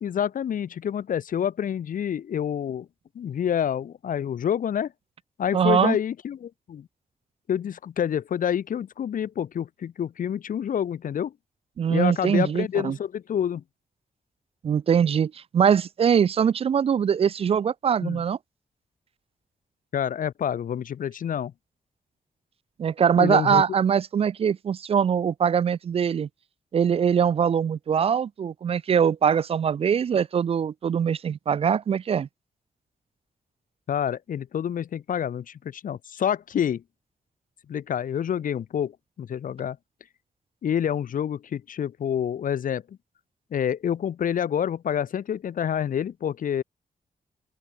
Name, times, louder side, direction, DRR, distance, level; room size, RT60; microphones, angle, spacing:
voice 1, 0.0-2.9 3.1-4.9 5.4-6.9 7.5-11.3 11.9-13.6 18.0-18.2 19.9-21.5 23.2-23.6 33.9-36.8 37.7-38.9 39.2-39.8 40.6-43.0 43.5-46.6, left 9 dB, 85° left, 1.4 m, -27 dB
voice 2, 5.5-6.0 11.8-13.0 14.6-18.4 22.8-26.3 26.7-32.3, right 7 dB, 45° right, 0.4 m, -22 dB
open air
wide cardioid pair, 160°, 14 cm